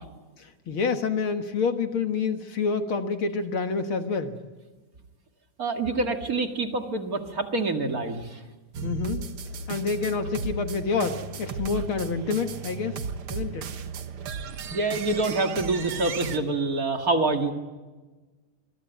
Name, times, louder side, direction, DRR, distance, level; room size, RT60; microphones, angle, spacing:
voice 1, 0.4-4.4 8.8-9.3 9.7-13.0 13.3-13.7, left 5 dB, 50° left, 7 dB, 1.8 m, -28 dB
voice 2, 5.6-8.4 14.7-17.5, right 3 dB, 35° right, 5 dB, 1.9 m, -26 dB
sound 1, 8.7-16.4, right 5 dB, 50° right, 1.9 m, -35 dB
26.5 x 23.0 x 9.2 m, 1.3 s
omnidirectional pair, 3.7 m